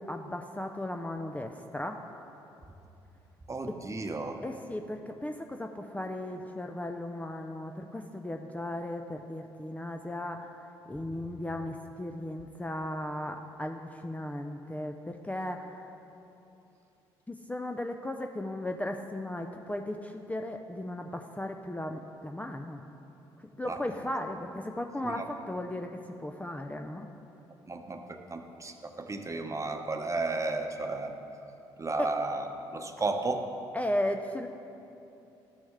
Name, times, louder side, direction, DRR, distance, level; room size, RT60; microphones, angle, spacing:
voice 1, 0.0-2.0 3.6-3.8 4.4-15.9 17.3-22.8 23.6-27.1 32.0-32.1 33.7-34.5, left 1 dB, 10° left, 4 dB, 0.5 m, -36 dB
voice 2, 3.5-4.4 23.7-23.8 25.0-25.2 27.7-31.1 31.8-33.5, right 3 dB, 25° right, 5 dB, 1.0 m, -33 dB
13.5 x 6.1 x 3.7 m, 2.9 s
hypercardioid pair, 50°, 12 cm